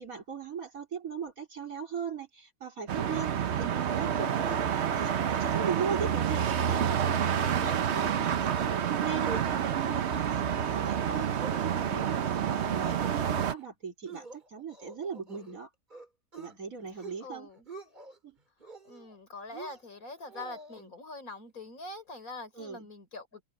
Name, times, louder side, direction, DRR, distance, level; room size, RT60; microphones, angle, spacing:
voice 1, 0.0-15.7 16.4-17.5 18.2-18.4 20.8-20.9 22.6-22.9, right 6 dB, 75° right, 4.0 m, -39 dB
sound 1, 2.9-13.5, right 8 dB, 55° right, 1.0 m, -29 dB
sound 2, 7.1-7.6 7.9-8.0 8.3-8.6 9.0-9.5 9.8-10.2 10.6-11.1 11.4-12.1 12.5-12.9 13.3-13.6 14.1-15.6 15.9-16.5 16.9-17.3 17.5-18.2 18.6-19.2 19.5-20.8, right 3 dB, 35° right, 2.9 m, -47 dB
voice 2, 17.2-17.6 18.8-23.4, left 2 dB, 80° left, 4.8 m, -44 dB
omnidirectional pair, 1.5 m